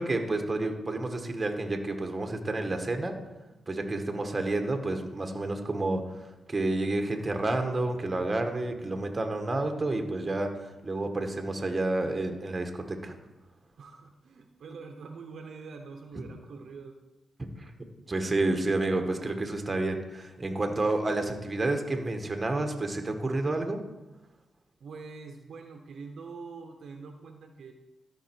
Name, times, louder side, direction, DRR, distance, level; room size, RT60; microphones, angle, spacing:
voice 1, 0.0-3.1 3.7-10.5 10.8-13.2 17.6-17.7 18.1-23.8, right 2 dB, 30° right, 4 dB, 1.3 m, -30 dB
voice 2, 13.8-17.0 24.8-27.7, right 4 dB, 70° right, 5 dB, 0.9 m, -44 dB
13.0 x 5.3 x 4.6 m, 1.0 s
cardioid pair, 70°, 0 cm